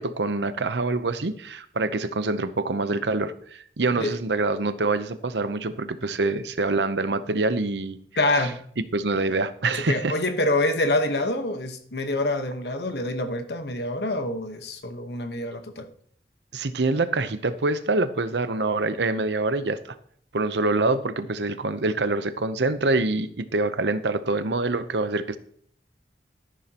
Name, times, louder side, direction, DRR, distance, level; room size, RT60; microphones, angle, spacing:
voice 1, 0.0-8.0 8.9-10.1 16.5-20.0 20.3-25.4, right 3 dB, 85° right, 0.8 m, -25 dB
voice 2, 8.2-8.6 9.9-15.9, left 2 dB, 75° left, 1.2 m, -26 dB
13.0 x 11.0 x 3.0 m
head